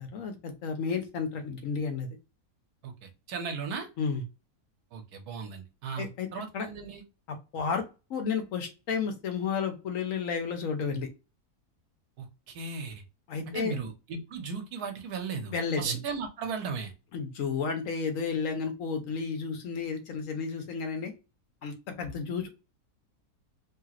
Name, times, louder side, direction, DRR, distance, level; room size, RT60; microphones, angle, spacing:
voice 1, 0.0-2.1 4.0-4.2 6.0-6.3 6.5-6.7 7.3-7.8 8.1-11.1 13.3-13.8 15.5-16.0 17.1-21.1 21.6-22.5, left 5 dB, 65° left, 5 dB, 1.1 m, -32 dB
voice 2, 2.8-3.9 4.9-7.0 12.2-13.0 13.5-16.9, right 5 dB, 80° right, 5 dB, 1.3 m, -36 dB
3.1 x 2.9 x 2.4 m, 0.29 s
omnidirectional pair, 1.6 m